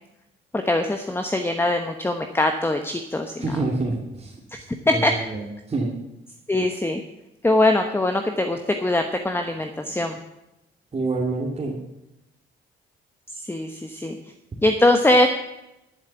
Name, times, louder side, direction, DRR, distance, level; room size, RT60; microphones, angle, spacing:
voice 1, 0.5-3.6 4.5-5.1 6.5-7.0 7.4-10.2 13.4-14.2 14.6-15.3, left 1 dB, 10° left, 6 dB, 1.0 m, -22 dB
voice 2, 3.4-4.4 4.9-5.9 10.9-11.8, right 3 dB, 30° right, -4 dB, 2.4 m, -27 dB
11.5 x 7.3 x 8.3 m, 0.91 s
cardioid pair, 90°, 20 cm